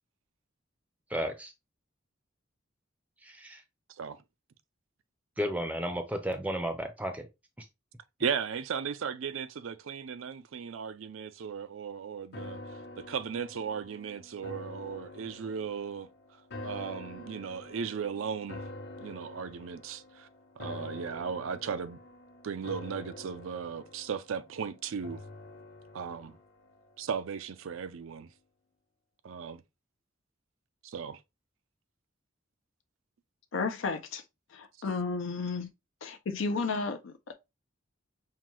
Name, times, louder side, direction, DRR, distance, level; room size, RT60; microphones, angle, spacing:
voice 1, 1.1-1.5 3.2-3.6 5.4-7.3 7.6-7.7, equal, 5° right, 0.5 m, -33 dB
voice 2, 8.2-16.1 16.6-18.6 19.0-20.3 20.6-22.0 22.4-25.2 25.9-26.4 27.0-28.3 29.2-29.6 30.8-31.2, right 6 dB, 85° right, 0.4 m, -36 dB
sound 1, 12.3-27.6 28.0-28.1, left 1 dB, 55° left, 0.9 m, -46 dB
voice 3, 33.5-34.2 34.5-35.7 36.0-37.3, left 4 dB, 75° left, 0.5 m, -33 dB
5.6 x 2.2 x 3.0 m
head